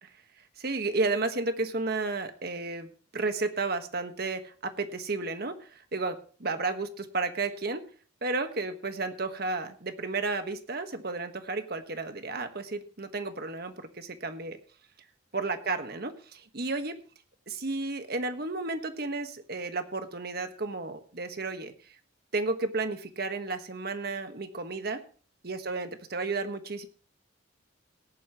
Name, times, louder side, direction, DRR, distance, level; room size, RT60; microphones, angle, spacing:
voice 1, 0.6-7.8 8.2-14.6 15.3-17.0 17.5-21.7 22.3-25.0 25.4-26.9, right 3 dB, 55° right, 8 dB, 1.4 m, -32 dB
17.5 x 11.0 x 3.1 m, 0.39 s
head